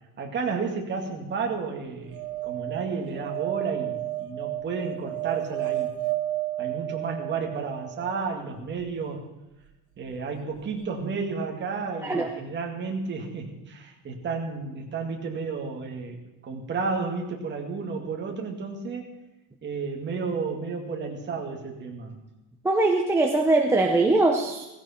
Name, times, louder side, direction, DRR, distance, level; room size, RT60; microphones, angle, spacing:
voice 1, 0.2-5.9 6.6-9.3 10.0-16.2 16.4-19.1 19.6-22.2, right 4 dB, 25° right, 1 dB, 2.2 m, -32 dB
sound 1, 2.1-8.3 10.6-10.7 10.8-10.9, right 15 dB, 75° right, 1.9 m, -32 dB
voice 2, 22.6-24.7, right 2 dB, 5° right, 1 dB, 0.6 m, -21 dB
17.5 x 16.0 x 4.4 m, 0.99 s
cardioid pair, 180°, 46 cm